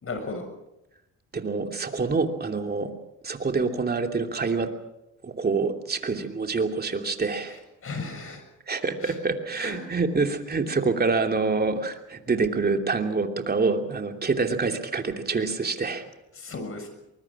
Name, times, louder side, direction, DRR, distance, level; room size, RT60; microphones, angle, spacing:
voice 1, 0.0-0.5 7.8-8.4 9.0-9.2 9.6-9.9 16.4-17.0, left 3 dB, 45° left, 7 dB, 6.7 m, -35 dB
voice 2, 1.3-2.9 3.2-4.7 5.2-7.5 8.7-16.1, right 4 dB, 30° right, 4 dB, 2.9 m, -26 dB
23.5 x 21.5 x 6.1 m, 0.89 s
cardioid pair, 90°, 30 cm